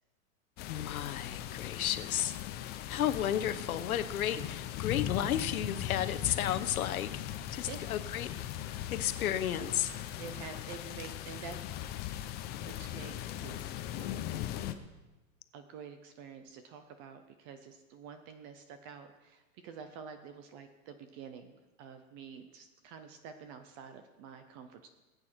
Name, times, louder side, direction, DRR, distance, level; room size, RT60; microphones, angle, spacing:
sound 1, 0.6-14.7, left 12 dB, 25° left, 0.6 m, -39 dB
voice 1, 0.7-2.3 2.9-7.2 7.5-8.3 8.9-9.9, left 11 dB, 80° left, 11 dB, 1.1 m, -33 dB
voice 2, 10.2-11.6 12.6-14.4 14.7-14.8 15.5-24.9, right 6 dB, 20° right, 8 dB, 0.3 m, -48 dB
19.0 x 8.7 x 4.4 m, 1.1 s
hypercardioid pair, 135°, 43 cm